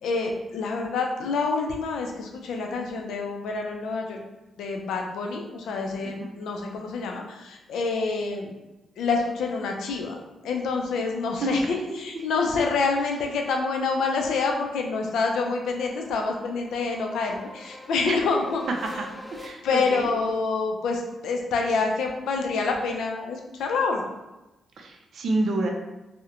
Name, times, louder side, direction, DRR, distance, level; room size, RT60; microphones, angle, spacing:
voice 1, 0.0-4.2 4.6-8.5 9.0-10.2 10.4-18.6 19.6-24.1, left 4 dB, 90° left, 2 dB, 0.4 m, -27 dB
sound 1, 13.4-19.5, left 1 dB, 20° left, 0.5 m, -46 dB
voice 2, 19.4-20.1 24.8-25.7, right 2 dB, 70° right, 2 dB, 0.4 m, -27 dB
2.4 x 2.1 x 2.8 m, 1.0 s
cardioid pair, 90°, 0 cm